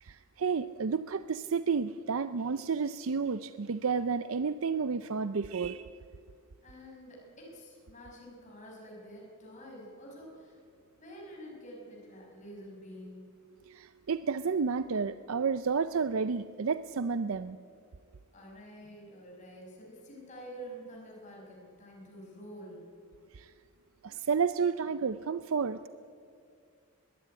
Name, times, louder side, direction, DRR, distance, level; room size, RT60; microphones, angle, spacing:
voice 1, 0.0-5.9 13.6-17.6 23.3-23.5 24.0-25.8, right 5 dB, 65° right, 13 dB, 0.5 m, -31 dB
voice 2, 6.6-10.6 11.0-13.3 18.3-22.9, equal, 35° left, -2 dB, 5.9 m, -48 dB
21.0 x 16.0 x 9.9 m, 2.4 s
head